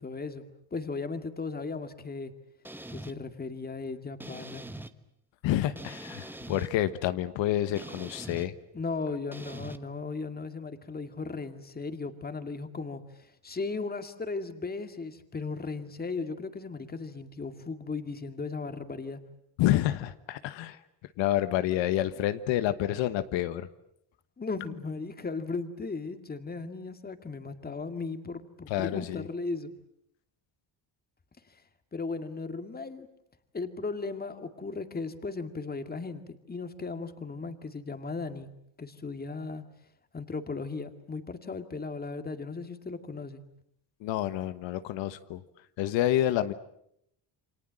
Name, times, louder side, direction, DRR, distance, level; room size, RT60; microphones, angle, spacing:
voice 1, 0.0-2.3 2.9-4.7 8.7-19.2 24.4-29.7 31.9-33.1 33.5-38.5 38.8-39.6 40.1-43.4, left 4 dB, 20° left, 8 dB, 2.2 m, -36 dB
sound 1, 2.6-3.1 4.2-4.9 5.8-6.7 7.8-8.5 9.3-9.8, right 1 dB, 5° right, 1.1 m, -42 dB
voice 2, 5.4-8.5 19.6-20.8 21.2-23.7 28.7-29.2 44.0-45.4 45.8-46.5, left 13 dB, 85° left, 12 dB, 1.3 m, -28 dB
28.5 x 25.0 x 7.7 m, 0.74 s
cardioid pair, 125°, 44 cm